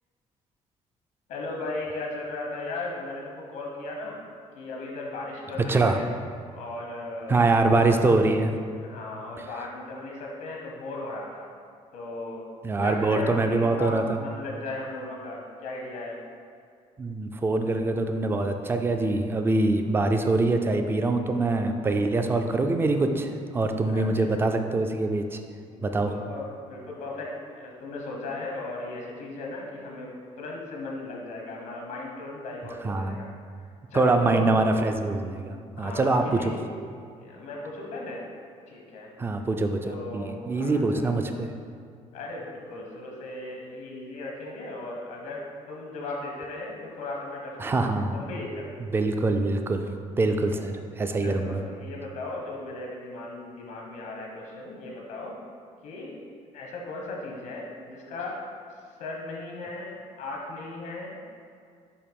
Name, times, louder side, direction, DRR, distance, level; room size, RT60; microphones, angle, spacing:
voice 1, 1.3-4.2 4.5-6.1 6.5-8.0 8.8-11.5 11.9-12.4 12.8-16.2 23.9-24.4 25.6-33.3 33.9-34.5 35.8-36.6 37.1-38.3 38.7-39.1 39.8-41.2 42.1-48.8 50.3-50.6 51.2-55.4 55.8-56.3 56.5-61.2, left 2 dB, 90° left, -1 dB, 0.9 m, -37 dB
voice 2, 7.3-8.5 12.6-14.2 17.0-25.4 25.8-26.1 32.8-33.2 33.9-36.2 39.2-41.5 47.6-48.2 48.9-49.8 50.2-51.6, right 2 dB, 20° right, 6 dB, 0.3 m, -24 dB
6.9 x 2.7 x 5.2 m, 2.2 s
cardioid pair, 165°, 13 cm